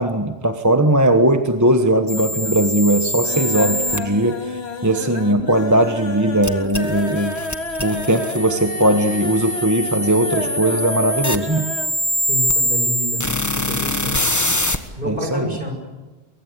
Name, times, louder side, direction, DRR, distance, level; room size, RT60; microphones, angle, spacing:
voice 1, 0.0-4.4 4.8-7.4 7.8-11.7 15.0-15.5, right 1 dB, 15° right, 7 dB, 1.2 m, -18 dB
sound 1, 1.2-1.8 2.1-2.6 2.9-12.0 12.3-12.4 12.7-12.8, left 1 dB, 85° left, 2.3 m, -31 dB
sound 2, 2.1-4.0 6.4-14.8, left 1 dB, 15° left, 1.5 m, -24 dB
voice 2, 12.3-14.2 14.6-15.7, equal, 55° right, 3 dB, 6.5 m, -29 dB
24.5 x 23.5 x 8.3 m, 1.3 s
omnidirectional pair, 1.1 m